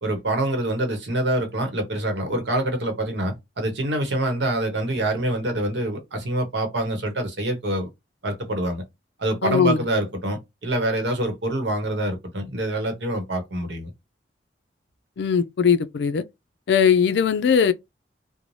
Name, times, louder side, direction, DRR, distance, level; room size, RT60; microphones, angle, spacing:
voice 1, 0.0-7.9 8.2-8.8 9.2-13.9, right 1 dB, 70° right, 0.9 m, -26 dB
voice 2, 9.4-9.8 15.2-16.2 16.7-17.7, left 6 dB, 65° left, 0.3 m, -19 dB
2.6 x 2.1 x 3.0 m
head